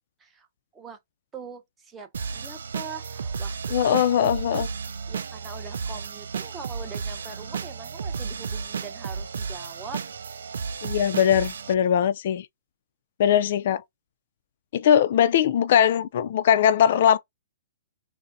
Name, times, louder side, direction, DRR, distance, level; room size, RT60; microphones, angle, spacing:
voice 1, 1.3-4.0 4.5-4.6 5.1-10.0, right 5 dB, 15° right, 0.7 m, -42 dB
sound 1, 2.1-11.7, right 5 dB, 85° right, 0.4 m, -33 dB
voice 2, 3.7-4.7 10.8-12.5 13.2-13.8 14.7-17.2, left 9 dB, 55° left, 0.3 m, -20 dB
4.0 x 2.0 x 2.5 m
hypercardioid pair, 155°, 0 cm